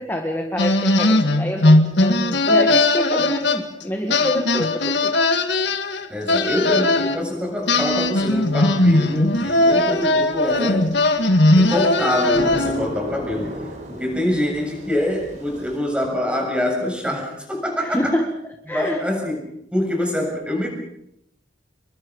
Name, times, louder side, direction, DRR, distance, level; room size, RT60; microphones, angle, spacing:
voice 1, 0.0-5.1 17.8-18.3 18.7-19.0, equal, 10° left, 3 dB, 1.9 m, -26 dB
sound 1, 0.6-3.8 4.1-7.2 7.7-12.9, left 2 dB, 65° left, 2.0 m, -18 dB
voice 2, 6.1-10.9 11.6-18.2 18.7-20.7, left 1 dB, 5° right, 1 dB, 7.4 m, -25 dB
sound 2, 7.7-15.8, right 1 dB, 40° right, 4.5 m, -38 dB
28.5 x 23.5 x 5.5 m, 0.76 s
head